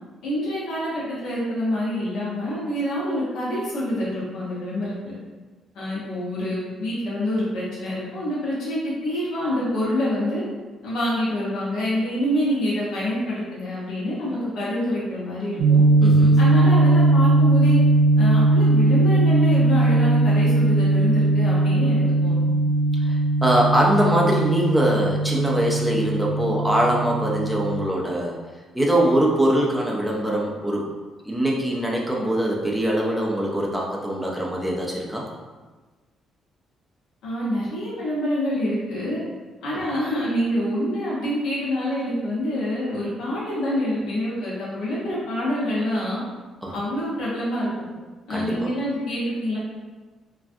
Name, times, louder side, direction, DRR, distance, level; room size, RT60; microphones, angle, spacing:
voice 1, 0.2-5.1 5.7-10.4 10.8-15.9 16.4-17.8 18.2-22.4 37.2-39.2 39.6-46.2 46.7-47.9 48.3-49.6, equal, 70° left, -7 dB, 0.8 m, -26 dB
sound 1, 15.6-27.9, right 2 dB, 65° right, 0.4 m, -19 dB
voice 2, 16.0-16.4 23.0-28.4 28.7-30.9 31.3-35.2 46.6-46.7 48.3-48.7, right 1 dB, ahead, -3 dB, 0.5 m, -22 dB
3.2 x 2.4 x 2.5 m, 1.3 s
cardioid pair, 160°, 0 cm